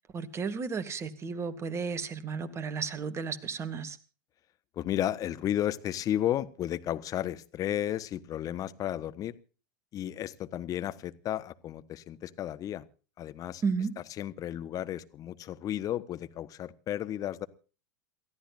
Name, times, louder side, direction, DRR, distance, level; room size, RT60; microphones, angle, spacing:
voice 1, 0.1-4.0 13.6-13.9, right 5 dB, 25° right, 10 dB, 2.3 m, -33 dB
voice 2, 4.7-9.3 9.9-12.8 13.2-13.6 14.0-17.5, left 12 dB, 35° left, 13 dB, 1.2 m, -33 dB
28.5 x 14.0 x 2.6 m, 0.37 s
figure-of-eight pair, 85°, 10 cm